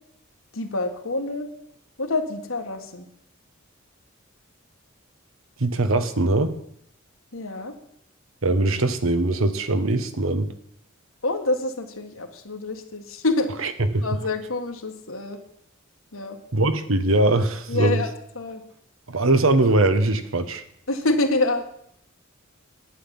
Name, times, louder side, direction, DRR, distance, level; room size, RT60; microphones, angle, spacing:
voice 1, 0.5-1.5 2.0-3.1 7.3-7.7 11.2-13.7 14.0-15.4 16.1-16.4 17.7-18.6 20.9-21.6, left 2 dB, 75° left, 5 dB, 1.9 m, -27 dB
voice 2, 5.6-6.5 8.4-10.5 13.9-14.0 16.5-18.0 19.1-20.6, right 2 dB, 70° right, 10 dB, 1.2 m, -21 dB
11.0 x 9.7 x 7.1 m, 0.71 s
head